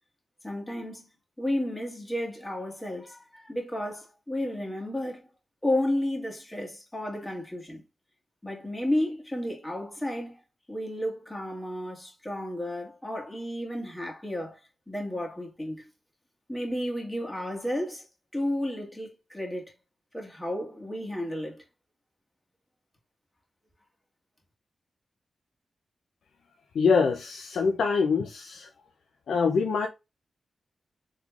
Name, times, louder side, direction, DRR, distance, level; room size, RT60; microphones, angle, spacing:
voice 1, 0.4-1.1 1.4-5.2 5.6-7.8 8.4-10.4 10.7-14.6 14.9-15.9 16.5-18.0 18.3-19.6 20.1-21.6, left 1 dB, 20° left, 1.5 m, -32 dB
voice 2, 26.7-28.7 29.3-29.9, left 5 dB, 85° left, 0.4 m, -24 dB
3.6 x 3.1 x 2.4 m
cardioid pair, 55°, 0 cm